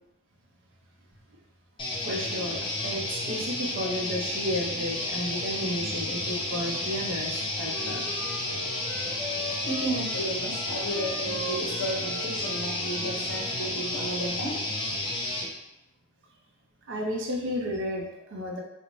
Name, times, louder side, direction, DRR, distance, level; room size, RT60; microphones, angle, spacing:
sound 1, 1.8-15.5, left 1 dB, 25° left, 0.3 m, -32 dB
voice 1, 2.0-8.1 16.9-18.6, equal, 60° right, 0 dB, 0.5 m, -32 dB
Wind instrument woodwind instrument, 7.3-13.6, equal, 5° left, 0.9 m, -41 dB
voice 2, 9.6-14.6, right 1 dB, 70° left, -2 dB, 0.7 m, -33 dB
2.5 x 2.0 x 3.0 m, 0.87 s
head